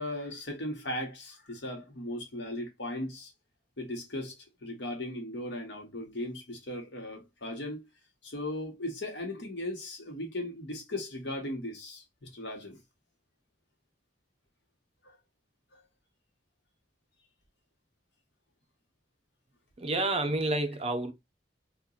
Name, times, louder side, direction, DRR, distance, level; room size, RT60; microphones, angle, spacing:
voice 1, 0.0-3.3 3.8-4.4 4.6-7.9 8.2-12.8 15.0-15.1, left 1 dB, 70° left, 1.3 m, -37 dB
voice 2, 19.8-21.1, right 2 dB, 35° right, 0.7 m, -29 dB
3.0 x 2.5 x 3.9 m
head